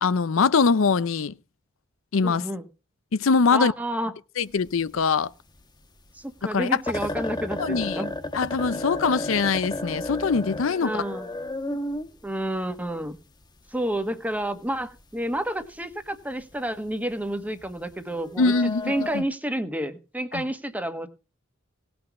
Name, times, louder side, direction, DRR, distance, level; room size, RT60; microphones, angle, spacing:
voice 1, 0.0-1.3 2.1-2.5 3.1-3.7 4.4-5.3 6.5-6.8 7.6-8.0 8.3-11.0 18.4-19.2 20.3-20.4, left 5 dB, 75° left, 0.6 m, -23 dB
voice 2, 2.2-2.6 3.5-4.1 6.1-8.1 10.8-11.3 12.2-13.2 13.7-18.5 18.9-21.1, right 1 dB, 10° right, 1.3 m, -30 dB
sound 1, 4.5-5.3 5.6-5.7 6.1-6.2 6.5-6.6 6.9-13.2 14.3-14.4 14.7-15.0 15.3-15.6 16.1-16.2 16.5-16.9 17.5-19.2, left 1 dB, 20° left, 1.1 m, -33 dB
18.0 x 6.2 x 5.9 m
head